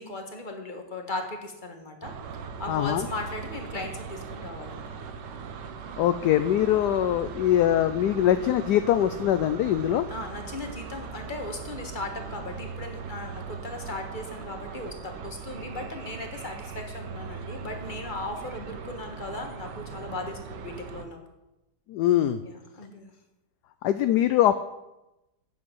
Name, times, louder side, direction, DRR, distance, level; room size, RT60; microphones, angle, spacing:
voice 1, 0.0-4.9 10.1-21.2 22.4-23.1, left 2 dB, 25° left, 3 dB, 1.5 m, -37 dB
sound 1, 2.0-21.0, right 5 dB, 70° right, 1.5 m, -39 dB
voice 2, 2.7-3.1 6.0-10.0 21.9-22.4 23.8-24.6, left 11 dB, 75° left, 11 dB, 1.0 m, -22 dB
8.8 x 7.5 x 7.8 m, 0.95 s
omnidirectional pair, 2.0 m